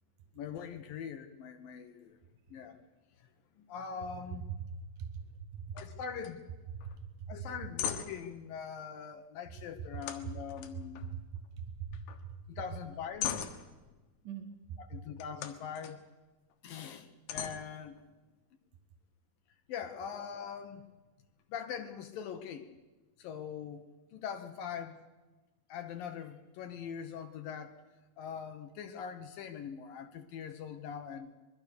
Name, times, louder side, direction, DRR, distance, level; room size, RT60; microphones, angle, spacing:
voice 1, 0.4-2.2 2.5-2.8 3.2-3.3 3.6-4.5 5.7-6.5 7.3-11.0 12.5-13.5 14.8-16.0 16.6-18.0 19.7-20.8 21.5-22.7 23.2-25.0 25.7-27.8 28.2-31.3, left 7 dB, 70° left, 8 dB, 2.4 m, -42 dB
voice 2, 4.7-5.8 6.8-7.3 11.1-12.4 14.2-14.5, right 6 dB, 65° right, 8 dB, 2.3 m, -43 dB
sound 1, 5.8-5.9 6.2-6.3 6.8-7.0 7.4-8.3 10.0-11.5 11.8-12.3 12.7-14.0 15.2-16.0 16.5-16.6 17.3-18.3, left 9 dB, 85° left, 3.7 m, -40 dB
25.0 x 22.0 x 6.8 m, 1.2 s
omnidirectional pair, 5.0 m